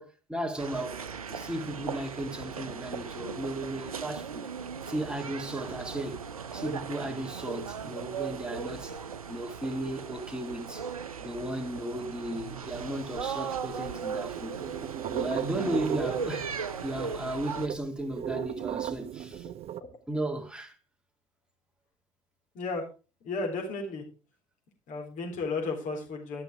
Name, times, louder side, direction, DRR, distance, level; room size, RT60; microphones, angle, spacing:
voice 1, 0.0-4.5 4.9-6.2 6.5-9.0 9.3-10.9 11.2-14.6 15.1-19.5 20.1-20.8, right 1 dB, 5° right, 2.1 m, -35 dB
sound 1, 0.6-17.7, right 6 dB, 80° right, 0.6 m, -38 dB
sound 2, 12.7-13.8 14.1-16.7 17.0-17.1 17.3-19.8, right 10 dB, 35° right, 0.5 m, -36 dB
voice 2, 22.5-22.9 23.2-24.0 24.9-26.4, left 3 dB, 45° left, 4.0 m, -34 dB
12.0 x 6.4 x 5.0 m
figure-of-eight pair, 60°, 18 cm